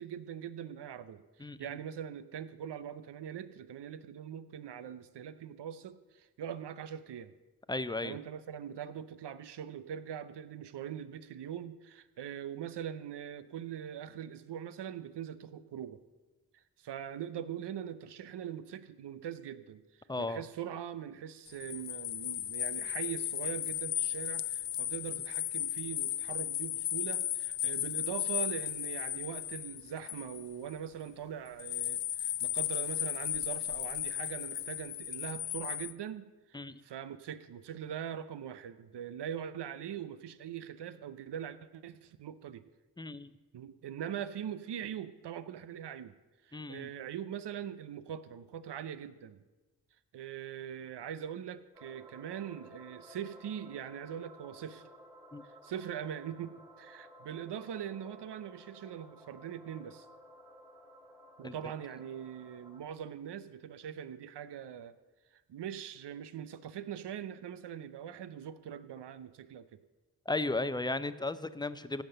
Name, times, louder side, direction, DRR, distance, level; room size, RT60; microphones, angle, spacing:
voice 1, 0.0-7.3 8.0-16.0 16.5-19.8 20.2-42.6 43.5-46.1 46.4-49.4 50.1-54.9 55.4-60.1 61.4-65.0 65.5-69.8, right 9 dB, 90° right, 14 dB, 0.7 m, -42 dB
voice 2, 1.4-1.8 7.7-8.2 20.1-20.4 36.5-36.7 43.0-43.3 46.5-46.9 55.3-55.4 61.4-61.5 70.3-72.0, left 2 dB, 10° left, 14 dB, 0.5 m, -35 dB
sound 1, 21.5-30.7 31.6-35.9, left 12 dB, 90° left, 0.5 m, -35 dB
sound 2, 51.7-62.8, equal, 10° right, 1.9 m, -56 dB
16.0 x 5.9 x 6.7 m, 1.2 s
cardioid pair, 65°, 40 cm